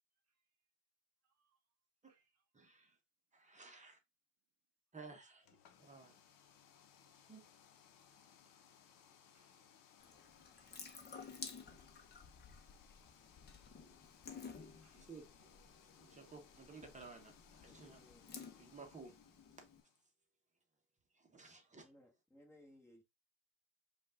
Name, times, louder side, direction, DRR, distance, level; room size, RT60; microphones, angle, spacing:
voice 1, 1.2-1.6 2.1-2.3 9.3-9.6 10.6-10.7 11.0-11.7 14.5-15.1 18.0-18.1, right 6 dB, 40° right, 0.7 m, -78 dB
voice 2, 2.5-3.0 3.3-4.0 4.9-5.5 5.8-6.1 7.1-7.4 11.6-11.7 12.2-12.3 14.9-15.6 16.0-18.0 18.6-19.2 19.6-19.7 21.1-21.9, right 4 dB, 20° right, 1.1 m, -56 dB
sound 1, 5.4-20.1, left 8 dB, 55° left, 1.0 m, -66 dB
Water tap faucet / Sink (filling or washing) / Drip, 10.0-19.8, left 5 dB, 25° left, 1.1 m, -54 dB
voice 3, 17.6-18.3 21.3-21.5 21.7-23.0, left 1 dB, 5° left, 1.6 m, -64 dB
5.1 x 2.6 x 3.7 m
supercardioid pair, 90°, 40 cm